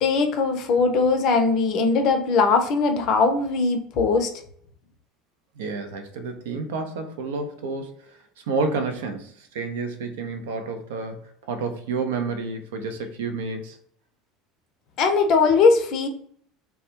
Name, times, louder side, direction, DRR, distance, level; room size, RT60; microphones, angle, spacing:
voice 1, 0.0-4.3 15.0-16.1, left 4 dB, 55° left, 6 dB, 0.5 m, -20 dB
voice 2, 5.6-8.2 8.5-13.8, right 4 dB, 75° right, 7 dB, 0.4 m, -30 dB
2.2 x 2.0 x 2.7 m, 0.62 s
hypercardioid pair, 70°, 0 cm